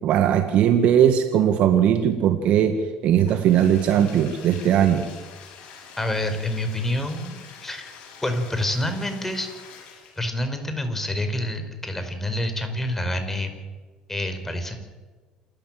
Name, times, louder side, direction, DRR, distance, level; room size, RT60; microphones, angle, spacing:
voice 1, 0.0-5.1, right 9 dB, 60° right, 7 dB, 1.8 m, -19 dB
Bathtub (filling or washing), 3.1-10.4, left 6 dB, 60° left, 7.1 m, -45 dB
voice 2, 6.0-7.8 8.2-9.5 10.2-13.6 14.1-14.8, left 1 dB, 15° left, 7 dB, 4.9 m, -27 dB
28.0 x 13.0 x 7.7 m, 1.3 s
hypercardioid pair, 65°, 2 cm